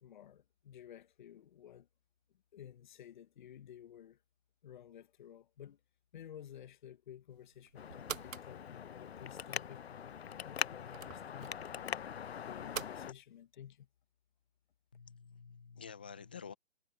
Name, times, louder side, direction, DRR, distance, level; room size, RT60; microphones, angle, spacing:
voice 1, 0.0-1.9 2.3-4.2 4.6-5.8 6.1-9.9 10.4-11.6 12.1-13.9, left 10 dB, 40° left, 1.3 m, -53 dB
sound 1, 7.3-12.9, right 7 dB, 85° right, 0.8 m, -48 dB
Traffic noise roadway noise, 7.8-13.1, left 8 dB, 55° left, 0.8 m, -42 dB
voice 2, 14.9-16.5, left 6 dB, 10° left, 0.5 m, -49 dB
hypercardioid pair, 150°, 38 cm